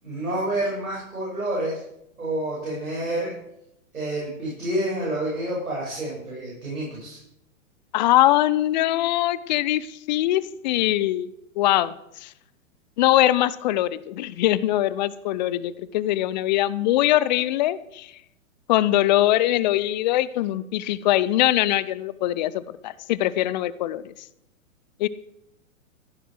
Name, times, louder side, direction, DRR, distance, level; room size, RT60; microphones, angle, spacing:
voice 1, 0.0-1.8 2.2-3.3 3.9-7.2, right 1 dB, 85° right, -5 dB, 6.0 m, -28 dB
voice 2, 7.9-11.3 11.6-11.9 12.2-12.3 13.0-18.1 18.7-24.1 25.0-25.1, left 14 dB, 35° left, 18 dB, 0.5 m, -22 dB
15.0 x 6.7 x 6.4 m, 0.81 s
hypercardioid pair, 120°, 41 cm